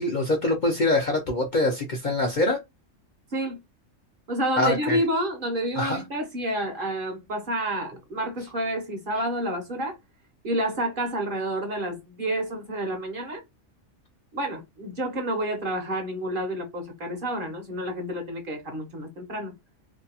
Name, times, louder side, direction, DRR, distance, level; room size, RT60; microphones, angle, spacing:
voice 1, 0.0-2.6 4.6-5.0 5.8-6.0, left 2 dB, 50° left, 0.6 m, -24 dB
voice 2, 4.3-10.0 10.4-13.4 14.3-19.5, right 1 dB, 50° right, 0.8 m, -29 dB
2.6 x 2.2 x 2.7 m
omnidirectional pair, 1.3 m